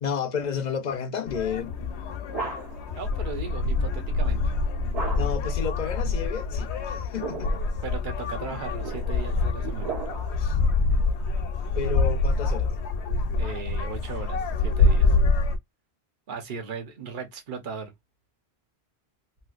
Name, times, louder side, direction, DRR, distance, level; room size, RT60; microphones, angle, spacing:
voice 1, 0.0-1.7 5.1-7.6 10.4-10.6 11.7-12.7, left 7 dB, 50° left, 0.6 m, -31 dB
sound 1, 1.3-15.6, left 3 dB, 90° left, 0.9 m, -26 dB
sound 2, 1.8-2.9 4.9-5.5 6.9-7.7 8.5-10.5, right 4 dB, 35° right, 1.5 m, -36 dB
voice 2, 3.0-4.5 7.8-9.9 13.4-15.2 16.3-17.9, right 5 dB, 50° right, 1.0 m, -37 dB
3.1 x 2.9 x 2.4 m
omnidirectional pair, 1.1 m